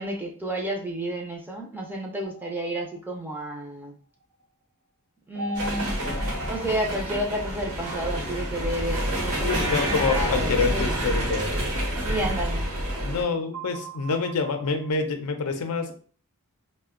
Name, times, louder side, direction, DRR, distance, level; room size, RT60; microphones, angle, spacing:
voice 1, 0.0-4.0 5.3-5.9 6.4-11.3 12.1-12.7, right 1 dB, 10° right, 0 dB, 0.5 m, -31 dB
sound 1, 2.2-3.5 5.3-7.9 8.6-10.6 11.3-13.2 13.5-14.9, right 1 dB, 90° right, 0.6 m, -41 dB
sound 2, 5.5-13.2, equal, 75° right, 1.0 m, -28 dB
voice 2, 9.4-11.4 13.0-15.9, left 4 dB, 75° left, 6 dB, 0.5 m, -27 dB
2.6 x 2.1 x 3.6 m, 0.43 s
head